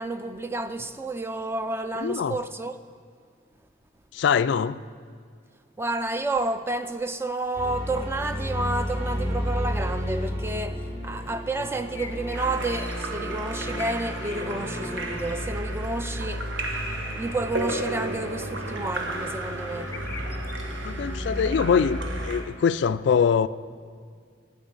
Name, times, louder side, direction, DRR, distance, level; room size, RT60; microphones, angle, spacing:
voice 1, 0.0-2.8 5.8-16.5 17.1-19.9, right 2 dB, 10° right, 0.4 m, -30 dB
voice 2, 2.0-2.3 4.1-4.8 20.8-23.5, left 6 dB, 65° left, 0.3 m, -23 dB
sound 1, 7.5-22.3, equal, 45° right, 2.9 m, -33 dB
sound 2, 11.9-13.1 13.4-14.5 14.9-15.4 19.7-20.5, left 5 dB, 10° left, 0.8 m, -43 dB
Splash splatter / Drip / Trickle dribble, 12.3-22.4, right 2 dB, 75° right, 1.3 m, -35 dB
10.0 x 8.7 x 8.3 m
head